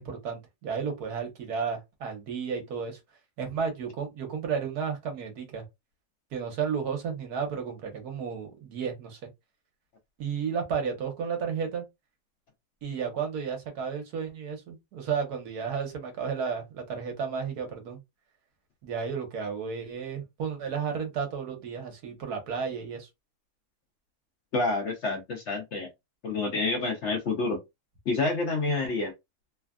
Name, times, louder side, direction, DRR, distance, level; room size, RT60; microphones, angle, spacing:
voice 1, 0.0-3.0 3.4-5.6 6.3-9.2 10.2-11.8 12.8-18.0 18.8-23.1, right 6 dB, 80° right, 1.4 m, -32 dB
voice 2, 24.5-25.9 26.2-27.6 28.1-29.1, left 3 dB, 60° left, 0.8 m, -28 dB
3.2 x 2.2 x 2.4 m
omnidirectional pair, 1.6 m